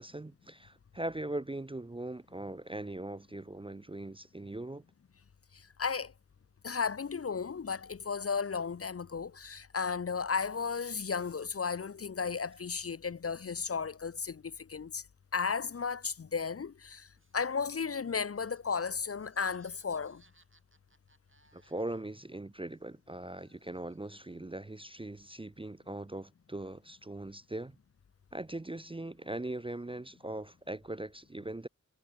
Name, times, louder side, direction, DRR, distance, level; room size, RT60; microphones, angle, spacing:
voice 1, 0.0-4.8 21.5-27.8 28.3-31.7, right 1 dB, 15° right, 0.4 m, -40 dB
voice 2, 5.5-6.1 6.6-15.0 15.3-17.1 17.3-20.2, left 5 dB, 45° left, 0.5 m, -34 dB
Laughter, 17.2-22.3 22.6-24.5, right 2 dB, 40° right, 3.5 m, -69 dB
wide cardioid pair, 55°, 32 cm